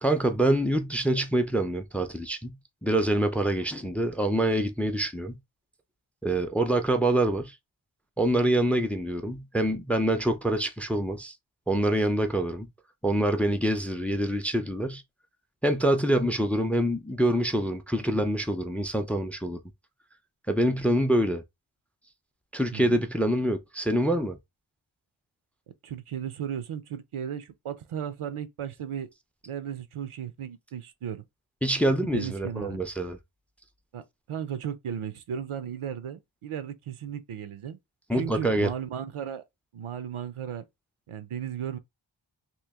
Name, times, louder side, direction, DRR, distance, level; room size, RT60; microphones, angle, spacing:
voice 1, 0.0-5.4 6.2-7.5 8.2-11.3 11.7-12.7 13.0-15.0 15.6-19.6 20.5-21.4 22.5-24.4 31.6-33.2 38.1-38.7, right 1 dB, 5° left, 0.4 m, -25 dB
voice 2, 22.7-23.0 25.8-29.1 29.5-31.2 32.0-32.8 33.9-37.8 38.1-39.4 39.7-40.6 41.1-41.8, right 9 dB, 80° right, 0.6 m, -35 dB
3.0 x 2.5 x 3.5 m
wide cardioid pair, 85°, 49 cm